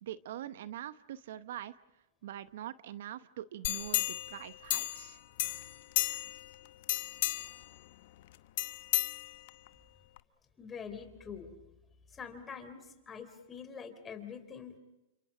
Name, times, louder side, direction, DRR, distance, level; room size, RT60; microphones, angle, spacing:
voice 1, 0.0-1.7 2.2-5.2, right 12 dB, 65° right, 14 dB, 0.8 m, -43 dB
sound 1, 3.6-5.1 5.4-6.5 6.8-7.6 8.6-9.7 10.2-10.3, left 16 dB, 60° left, 1.0 m, -33 dB
voice 2, 10.6-11.6 12.1-14.8, left 6 dB, 15° left, 8 dB, 3.5 m, -45 dB
30.0 x 26.5 x 5.1 m, 0.96 s
hypercardioid pair, 130°, 0 cm